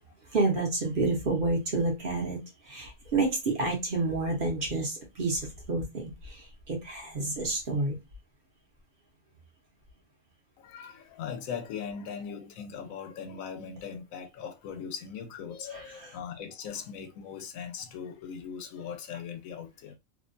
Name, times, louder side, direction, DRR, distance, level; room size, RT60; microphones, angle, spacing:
voice 1, 0.3-8.0 15.7-15.8, right 3 dB, 50° right, 0.8 m, -29 dB
voice 2, 10.6-20.0, left 7 dB, 85° left, 1.0 m, -39 dB
2.7 x 2.1 x 2.4 m
omnidirectional pair, 1.4 m